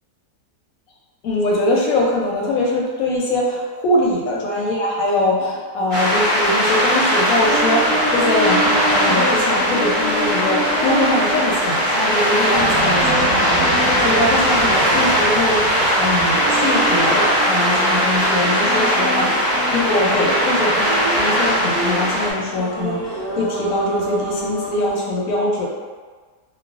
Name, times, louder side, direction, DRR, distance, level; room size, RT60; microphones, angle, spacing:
voice 1, 1.2-25.7, left 2 dB, 70° left, -3 dB, 0.9 m, -22 dB
sound 1, 5.9-22.3, equal, 40° right, 0.8 m, -19 dB
sound 2, 7.3-24.9, right 1 dB, 65° right, 1.2 m, -28 dB
sound 3, 12.5-17.5, right 2 dB, 10° left, 0.6 m, -32 dB
3.1 x 2.1 x 2.3 m, 1.5 s
omnidirectional pair, 1.8 m